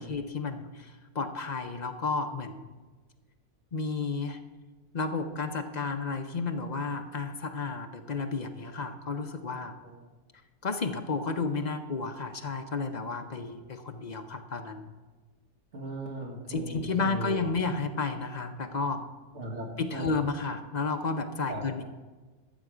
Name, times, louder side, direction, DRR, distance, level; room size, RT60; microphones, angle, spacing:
voice 1, 0.0-2.7 3.7-4.4 4.9-9.8 10.6-14.9 16.5-19.0 19.8-21.8, left 4 dB, 40° left, 6 dB, 0.8 m, -32 dB
voice 2, 15.7-17.5 19.3-20.1 21.5-21.6, right 1 dB, 70° right, 0 dB, 1.9 m, -38 dB
13.0 x 8.1 x 5.0 m, 1.3 s
omnidirectional pair, 1.3 m